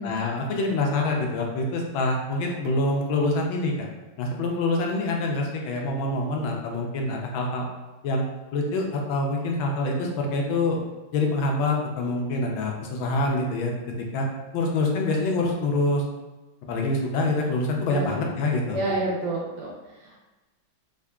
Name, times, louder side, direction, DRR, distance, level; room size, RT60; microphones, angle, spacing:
voice 1, 0.0-3.9 4.2-7.7 8.0-8.2 8.5-10.8 11.1-13.7 14.1-14.3 14.5-16.0 16.7-18.8, left 2 dB, 75° left, 1 dB, 1.3 m, -25 dB
voice 2, 18.7-20.2, right 2 dB, 75° right, -5 dB, 1.5 m, -29 dB
3.7 x 3.3 x 2.2 m, 1.1 s
omnidirectional pair, 2.3 m